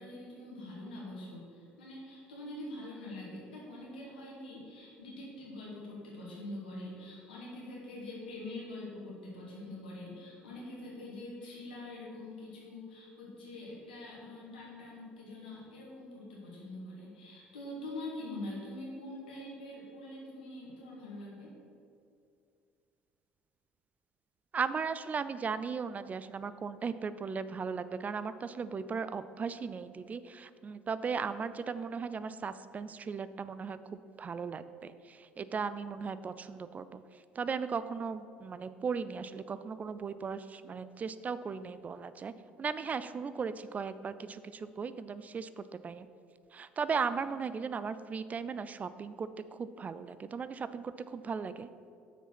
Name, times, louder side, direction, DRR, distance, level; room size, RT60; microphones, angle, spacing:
voice 1, 0.0-21.5, left 1 dB, 85° left, -5 dB, 2.0 m, -44 dB
voice 2, 24.5-46.1 46.5-51.7, right 5 dB, 30° right, 13 dB, 0.3 m, -37 dB
6.9 x 4.7 x 5.9 m, 2.4 s
hypercardioid pair, 60°, 5 cm